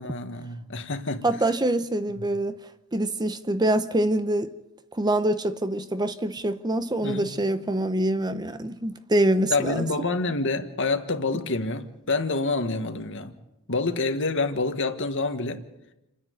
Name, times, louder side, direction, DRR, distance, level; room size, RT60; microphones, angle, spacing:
voice 1, 0.0-1.2 7.0-7.3 9.5-13.3 13.7-15.6, left 3 dB, 60° left, 1.6 m, -27 dB
voice 2, 1.2-2.6 2.9-4.5 4.9-9.9, right 1 dB, 20° right, 0.8 m, -25 dB
28.5 x 10.0 x 9.4 m
head